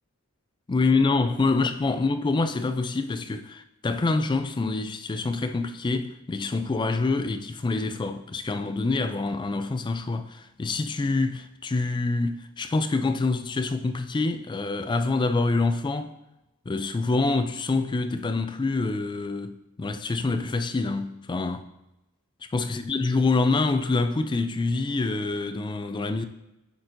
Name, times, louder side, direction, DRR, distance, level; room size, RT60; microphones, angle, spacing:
voice 1, 0.7-16.1 16.7-21.7 22.5-26.3, left 3 dB, 20° left, 0.3 m, -26 dB
10.5 x 4.2 x 2.6 m
head